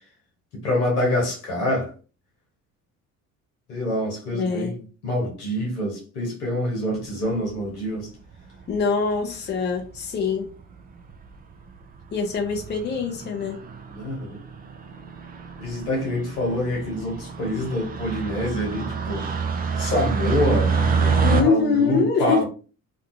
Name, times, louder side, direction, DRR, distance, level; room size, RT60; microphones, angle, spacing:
voice 1, 0.5-1.9 3.7-8.1 13.9-14.4 15.6-19.2 19.8-22.4, left 1 dB, 75° left, 1.1 m, -26 dB
voice 2, 4.4-4.8 8.7-10.5 12.1-13.6 21.2-22.4, left 5 dB, 20° left, 0.6 m, -24 dB
sound 1, 7.2-7.7 8.7-9.1 10.0-10.1 10.2-10.3 10.6-10.7 11.0-11.4 11.8-12.0 12.3-21.4, right 5 dB, 20° right, 0.3 m, -27 dB
2.6 x 2.3 x 2.6 m
figure-of-eight pair, 45°, 46 cm